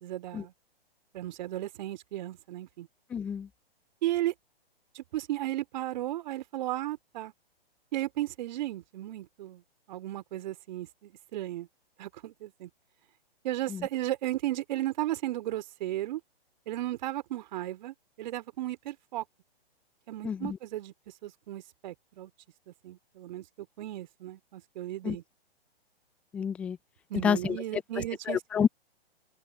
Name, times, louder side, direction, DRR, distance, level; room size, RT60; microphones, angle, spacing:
voice 1, 0.0-0.5 1.1-2.9 4.0-4.3 4.9-7.3 7.9-9.6 9.9-11.7 12.0-12.7 13.4-16.2 16.7-19.2 20.1-20.9 21.2-22.3 22.7-25.2 27.1-28.4, right 14 dB, 45° right, 3.5 m, -35 dB
voice 2, 3.1-3.5 13.7-13.9 20.2-20.6 25.0-25.2 26.3-26.8 27.2-27.6 28.3-28.7, left 7 dB, 5° left, 0.3 m, -28 dB
open air
figure-of-eight pair, 125°, 30 cm